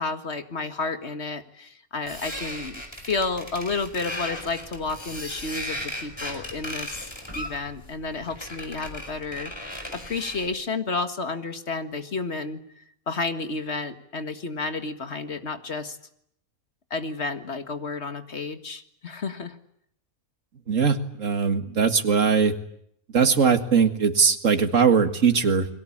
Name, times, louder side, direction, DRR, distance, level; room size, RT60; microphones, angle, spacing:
voice 1, 0.0-7.1 7.4-16.0 16.9-19.6, left 3 dB, 50° left, 9 dB, 2.0 m, -31 dB
sound 1, 2.1-10.5, left 1 dB, 20° left, 4.9 m, -37 dB
voice 2, 20.7-22.5 23.1-25.7, right 6 dB, 60° right, 8 dB, 2.3 m, -20 dB
30.0 x 22.5 x 8.7 m, 0.72 s
omnidirectional pair, 1.5 m